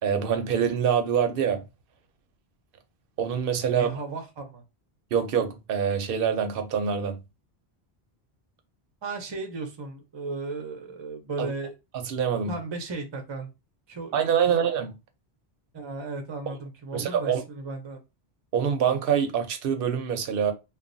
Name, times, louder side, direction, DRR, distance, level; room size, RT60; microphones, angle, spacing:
voice 1, 0.0-1.6 3.2-3.9 5.1-7.2 11.4-11.5 12.0-12.5 14.1-14.9 16.9-17.4 18.5-20.5, right 7 dB, 65° right, 0.7 m, -25 dB
voice 2, 3.7-4.6 9.0-11.8 12.5-13.5 13.9-14.2 14.5-14.6 15.7-18.0, right 3 dB, 35° right, 0.5 m, -35 dB
3.1 x 2.1 x 2.5 m
omnidirectional pair, 1.1 m